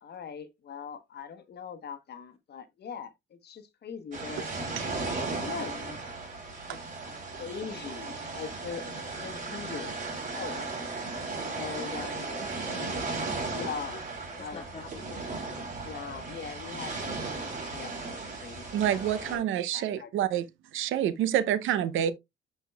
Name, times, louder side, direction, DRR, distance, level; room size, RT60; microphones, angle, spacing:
voice 1, 0.0-4.5 5.1-6.0 6.7-6.8 7.1-10.0 10.3-10.7 11.5-12.4 13.5-14.0 14.3-19.5 19.7-20.1, left 6 dB, 55° left, 1.0 m, -42 dB
sound 1, 4.1-19.4, right 3 dB, 40° right, 3.1 m, -36 dB
voice 2, 11.6-14.0 14.4-15.0 17.6-17.7, left 4 dB, 30° left, 1.7 m, -47 dB
voice 3, 18.7-20.4 20.7-22.1, right 10 dB, 85° right, 0.6 m, -27 dB
9.9 x 4.5 x 2.3 m
cardioid pair, 90°, 20 cm